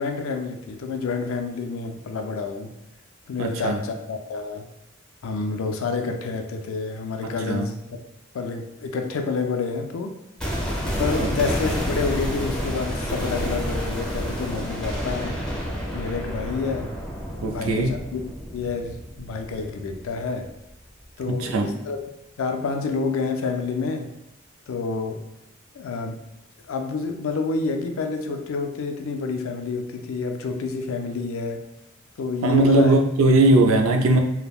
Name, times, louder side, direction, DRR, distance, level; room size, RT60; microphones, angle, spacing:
voice 1, 0.0-2.7 3.3-4.7 5.2-7.8 8.3-10.1 11.0-15.4 15.9-16.9 17.5-18.2 18.5-20.5 21.2-22.0 22.4-24.1 24.7-25.2 25.7-26.2 26.7-31.6 32.2-32.9, left 4 dB, 70° left, 5 dB, 0.4 m, -28 dB
voice 2, 3.4-3.8 7.2-7.6 11.2-11.3 17.4-18.0 21.3-21.7 32.4-34.2, right 2 dB, 70° right, 4 dB, 0.4 m, -19 dB
sound 1, 10.4-20.4 20.7-20.8, equal, 5° left, 0.7 m, -29 dB
3.3 x 2.0 x 2.3 m, 0.82 s
head